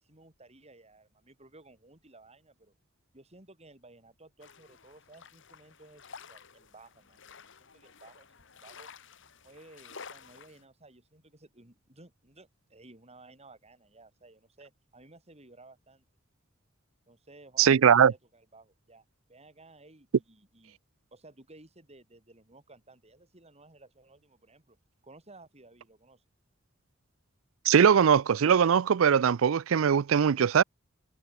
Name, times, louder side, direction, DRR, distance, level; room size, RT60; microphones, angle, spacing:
voice 1, 0.0-2.7 3.1-8.9 9.4-16.0 17.1-20.8 21.1-24.8 25.0-26.2, right 2 dB, 30° right, 6.4 m, -56 dB
sound 1, 4.4-10.6, left 5 dB, 65° left, 2.2 m, -51 dB
voice 2, 17.6-18.1 27.7-30.6, right 7 dB, 75° right, 0.4 m, -21 dB
head